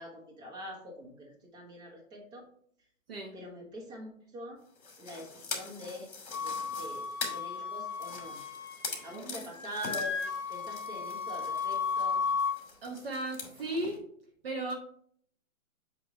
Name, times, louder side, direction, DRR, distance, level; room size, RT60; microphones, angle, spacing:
voice 1, 0.0-2.4 3.3-4.6 5.0-6.1 6.4-7.1 7.3-8.4 9.0-10.2 10.5-12.2, equal, 15° right, -4 dB, 1.4 m, -44 dB
sound 1, 4.7-14.0, left 4 dB, 50° left, 2.6 m, -44 dB
Wind instrument woodwind instrument, 6.3-9.2 9.5-12.6, left 5 dB, 30° left, 2.2 m, -34 dB
voice 2, 9.1-9.5 12.8-14.0 14.4-14.7, right 2 dB, 40° right, 0 dB, 1.1 m, -36 dB
7.8 x 2.9 x 5.5 m, 0.63 s
hypercardioid pair, 165°, 43 cm